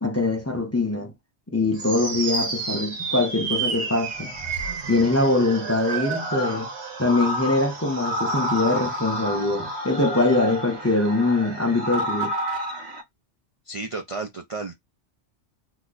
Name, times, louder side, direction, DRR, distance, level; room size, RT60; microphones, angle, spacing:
voice 1, 0.0-1.1 1.5-4.3 4.9-6.7 7.0-12.3, left 2 dB, 15° left, 0.7 m, -23 dB
sound 1, 1.8-13.0, right 2 dB, 65° right, 1.1 m, -30 dB
voice 2, 13.7-14.7, right 3 dB, 45° right, 0.4 m, -32 dB
2.9 x 2.1 x 3.8 m
omnidirectional pair, 1.2 m